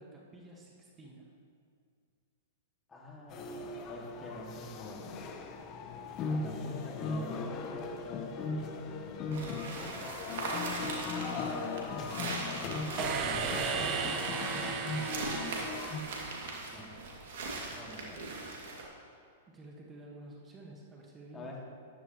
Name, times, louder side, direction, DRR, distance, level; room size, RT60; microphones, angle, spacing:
voice 1, 0.0-1.4 19.5-21.6, right 2 dB, 20° right, -2 dB, 1.7 m, -51 dB
voice 2, 2.9-5.2 6.3-7.9 9.0-9.4 11.0-11.7 13.1-14.0 16.7-16.9 17.7-18.3 21.3-21.6, left 2 dB, 15° left, -2 dB, 2.3 m, -46 dB
sound 1, 3.3-16.0, left 4 dB, 35° left, 1.0 m, -38 dB
sound 2, 9.3-18.8, right 3 dB, 65° right, 2.5 m, -40 dB
sound 3, 13.0-16.8, right 6 dB, 40° right, 1.0 m, -35 dB
14.0 x 11.0 x 3.2 m, 2.2 s
hypercardioid pair, 110°, 0 cm